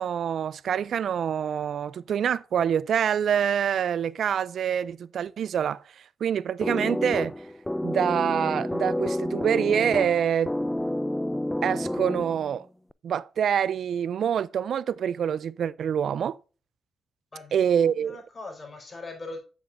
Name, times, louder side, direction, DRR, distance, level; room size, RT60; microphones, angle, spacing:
voice 1, 0.0-5.8 6.2-7.3 7.8-10.5 11.6-12.7 13.0-16.4 17.5-18.2, right 8 dB, 70° right, 0.3 m, -26 dB
sound 1, 6.6-12.6, left 1 dB, 5° left, 0.3 m, -29 dB
voice 2, 17.3-17.7 18.0-19.4, left 3 dB, 30° left, 4.3 m, -40 dB
8.9 x 8.2 x 2.5 m
cardioid pair, 75°, 0 cm